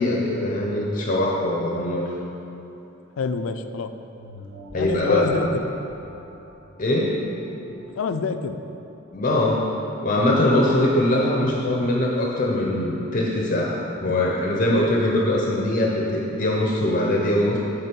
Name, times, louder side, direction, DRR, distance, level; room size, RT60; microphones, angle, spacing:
voice 1, 0.0-2.1 4.7-5.3 6.8-7.2 9.1-9.7 10.0-17.6, left 1 dB, 40° left, -2 dB, 0.6 m, -22 dB
voice 2, 3.2-3.9 4.7-5.7 8.0-8.6, left 4 dB, 75° left, 9 dB, 0.4 m, -27 dB
sound 1, 4.1-9.1 9.6-9.7, equal, 65° right, 1.4 m, -45 dB
8.8 x 3.6 x 5.2 m, 2.9 s
head